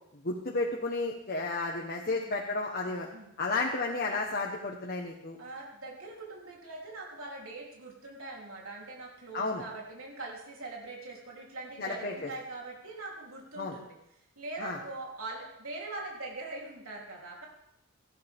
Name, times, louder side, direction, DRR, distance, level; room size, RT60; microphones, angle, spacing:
voice 1, 0.2-3.1 3.4-5.4 9.3-9.6 11.8-12.3 13.6-13.8 14.6-14.8, left 3 dB, 45° left, -1 dB, 1.4 m, -32 dB
voice 2, 2.0-2.4 2.8-3.3 5.4-14.0 14.4-17.5, right 2 dB, 80° right, -2 dB, 3.6 m, -42 dB
17.5 x 14.5 x 3.7 m, 0.79 s
head